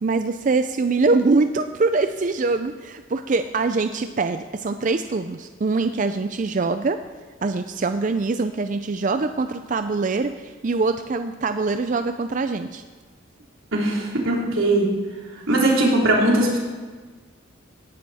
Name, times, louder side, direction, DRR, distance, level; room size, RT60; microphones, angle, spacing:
voice 1, 0.0-7.0 7.4-12.8, right 3 dB, 40° right, 9 dB, 0.4 m, -23 dB
voice 2, 13.7-14.9 15.5-16.6, right 1 dB, 80° right, -2 dB, 3.3 m, -19 dB
17.5 x 11.0 x 4.2 m, 1.4 s
head